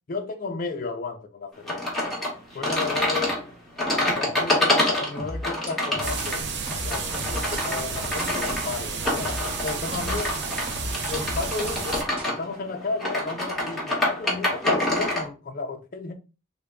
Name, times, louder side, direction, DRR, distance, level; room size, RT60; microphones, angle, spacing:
voice 1, 0.1-1.9 2.5-3.4 3.9-6.4 6.8-9.3 9.6-10.4 11.1-16.1, left 3 dB, 40° left, 0.4 m, -33 dB
sound 1, 1.7-15.3, left 1 dB, ahead, 0.9 m, -27 dB
sound 2, 5.2-6.2 6.7-7.5 8.2-8.3 9.2-10.2 10.7-11.7 12.2-12.3, left 1 dB, 25° right, 0.8 m, -34 dB
sound 3, 6.0-12.0, right 5 dB, 55° right, 0.4 m, -32 dB
3.4 x 2.1 x 3.5 m
head